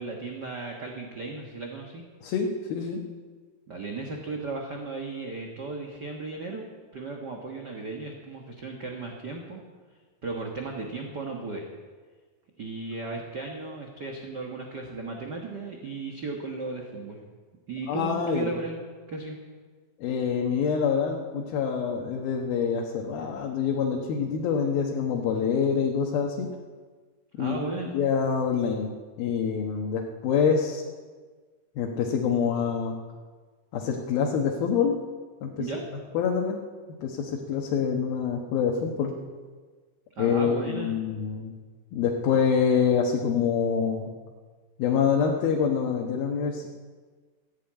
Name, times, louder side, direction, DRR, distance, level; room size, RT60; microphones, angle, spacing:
voice 1, 0.0-2.0 3.7-6.7 6.9-9.6 10.2-11.7 12.6-17.2 17.7-18.8 19.1-19.4 27.4-27.9 35.6-35.8 40.1-41.0, right 3 dB, 55° right, 1 dB, 1.2 m, -35 dB
voice 2, 2.2-3.0 17.9-18.6 20.0-26.5 27.4-27.6 27.9-28.9 29.2-30.8 31.8-33.0 33.7-35.0 35.4-35.7 36.1-36.6 37.0-39.1 40.2-41.5 41.9-44.1 44.8-46.7, left 6 dB, 90° left, 0 dB, 3.1 m, -26 dB
15.5 x 9.8 x 8.8 m, 1.5 s
omnidirectional pair, 4.1 m